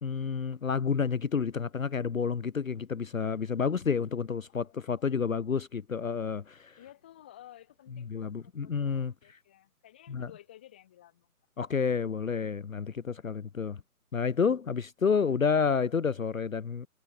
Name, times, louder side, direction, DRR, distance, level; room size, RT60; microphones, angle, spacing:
voice 1, 0.0-6.8 8.1-9.4 10.1-10.3 11.6-13.8 14.1-16.9, left 6 dB, 60° left, 0.9 m, -30 dB
voice 2, 4.5-5.7 6.8-11.3 13.3-13.5 15.1-15.2, left 12 dB, 5° left, 2.0 m, -55 dB
hypercardioid pair, 175°, 46 cm